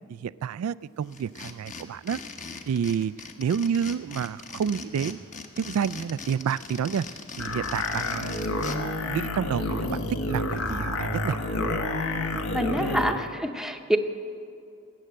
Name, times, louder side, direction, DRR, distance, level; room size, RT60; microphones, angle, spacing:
voice 1, 0.1-2.2 2.7-3.1 3.4-5.2 5.6-7.0 7.4-8.5 9.0-10.0 10.3-11.4, right 7 dB, 75° right, 18 dB, 0.3 m, -29 dB
sound 1, 1.1-8.8, left 4 dB, 35° left, 1.0 m, -40 dB
sound 2, 7.4-13.2, left 2 dB, 65° left, 1.3 m, -29 dB
voice 2, 12.5-14.0, equal, ahead, 6 dB, 0.7 m, -26 dB
19.5 x 8.5 x 7.7 m, 2.5 s
head